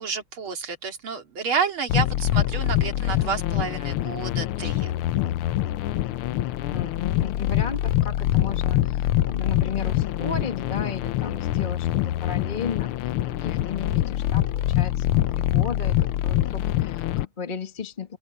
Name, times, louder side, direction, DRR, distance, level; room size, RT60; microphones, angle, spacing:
voice 1, 0.0-4.9, right 6 dB, 70° right, 3.3 m, -30 dB
sound 1, 1.9-17.2, left 13 dB, 80° left, 1.6 m, -24 dB
voice 2, 6.7-18.2, left 5 dB, 25° left, 1.5 m, -35 dB
open air
omnidirectional pair, 2.4 m